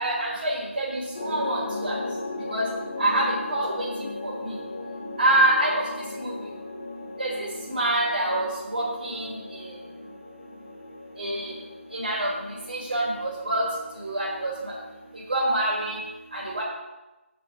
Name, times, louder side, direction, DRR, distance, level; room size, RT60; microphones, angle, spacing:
voice 1, 0.0-2.0 2.5-2.6 3.0-4.5 5.2-5.8 6.2-6.3 7.2-9.7 11.2-11.5 11.9-13.6 14.0-14.5 15.3-16.0 16.3-16.6, right 1 dB, 45° right, -4 dB, 3.2 m, -26 dB
sound 1, 1.1-15.1, left 2 dB, 40° left, 1.3 m, -37 dB
8.1 x 5.4 x 6.2 m, 1.1 s
figure-of-eight pair, 160°, 7 cm